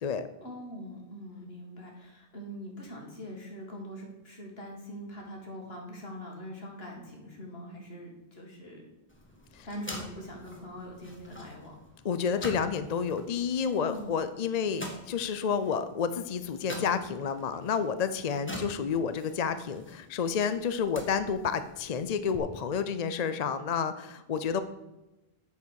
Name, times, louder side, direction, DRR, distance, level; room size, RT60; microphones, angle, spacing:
voice 1, 0.4-8.9 9.6-11.8 13.8-14.2, equal, 70° left, 1 dB, 2.4 m, -43 dB
sound 1, 9.1-22.4, equal, 10° left, 1.6 m, -46 dB
voice 2, 12.0-24.6, left 6 dB, 50° left, 11 dB, 0.6 m, -30 dB
8.2 x 7.1 x 6.3 m, 1.0 s
omnidirectional pair, 1.1 m